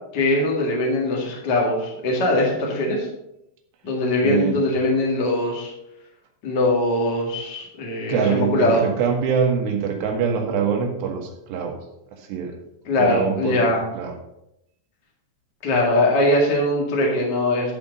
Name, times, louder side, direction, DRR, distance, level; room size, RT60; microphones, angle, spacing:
voice 1, 0.1-3.1 3.8-5.7 6.4-8.8 12.9-13.8 15.6-17.7, left 1 dB, 35° left, -2 dB, 1.7 m, -21 dB
voice 2, 4.2-4.6 8.1-11.8 12.1-12.5 12.9-13.7 13.9-14.2, right 6 dB, 80° right, 3 dB, 3.4 m, -24 dB
12.0 x 5.1 x 5.3 m, 0.83 s
omnidirectional pair, 4.8 m